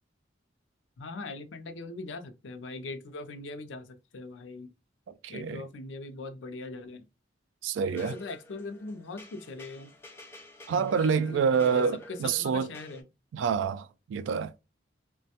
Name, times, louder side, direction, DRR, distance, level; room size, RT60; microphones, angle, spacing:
voice 1, 1.0-4.7 5.3-7.0 8.0-9.9 10.7-13.0, left 3 dB, 85° left, 0.5 m, -41 dB
voice 2, 5.2-5.6 7.6-8.1 10.7-12.7 13.3-14.6, right 6 dB, 85° right, 0.3 m, -27 dB
sound 1, 7.9-13.0, left 1 dB, 15° left, 0.4 m, -48 dB
3.2 x 2.2 x 2.8 m
head